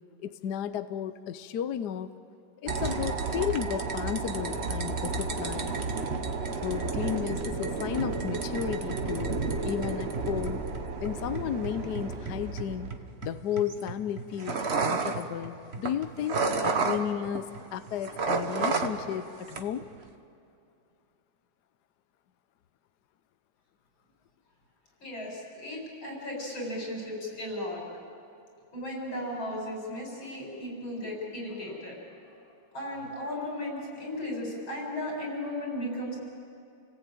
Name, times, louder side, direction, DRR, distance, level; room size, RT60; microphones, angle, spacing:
voice 1, 0.2-2.1 2.6-5.8 6.6-10.6 11.0-12.9 13.2-19.8, left 9 dB, 65° left, 11 dB, 1.2 m, -33 dB
sound 1, 2.7-17.6 17.9-19.2 19.5-20.0, right 4 dB, 40° right, 1.3 m, -31 dB
voice 2, 25.0-27.8 28.7-32.0 32.7-36.2, left 1 dB, 85° left, -2 dB, 7.7 m, -35 dB
30.0 x 18.5 x 9.0 m, 2.5 s
omnidirectional pair, 2.1 m